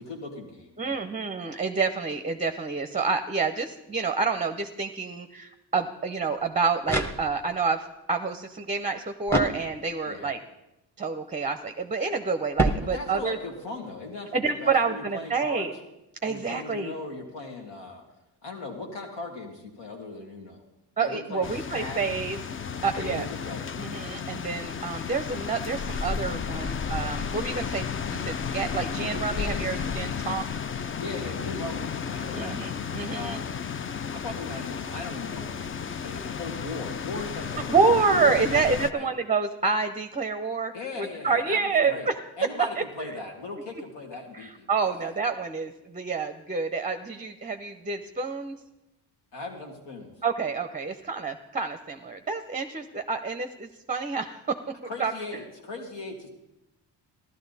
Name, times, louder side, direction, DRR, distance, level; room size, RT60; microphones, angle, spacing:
voice 1, 0.0-1.1 10.1-10.3 12.9-15.7 16.2-18.0 18.4-20.6 21.0-22.0 23.0-23.7 29.4-29.7 31.0-32.6 33.1-33.5 34.1-37.8 38.0-39.1 40.7-42.1 42.4-44.7 49.3-50.1 54.8-56.3, left 2 dB, 80° left, 2 dB, 2.4 m, -38 dB
voice 2, 0.8-10.4 11.0-13.4 14.3-15.7 16.2-16.9 21.0-22.4 22.8-23.3 23.8-27.8 28.1-30.5 30.8-30.9 32.3-33.4 37.7-42.1 42.8-43.1 44.3-48.5 50.2-54.6 55.0-55.1, right 4 dB, 20° right, 8 dB, 0.6 m, -28 dB
sound 1, 6.4-7.7 9.3-10.2 12.5-13.5, right 1 dB, 5° left, 1.1 m, -29 dB
sound 2, 21.4-38.9, left 6 dB, 30° left, 0.4 m, -33 dB
14.0 x 12.0 x 4.1 m, 0.93 s
cardioid pair, 85°, 42 cm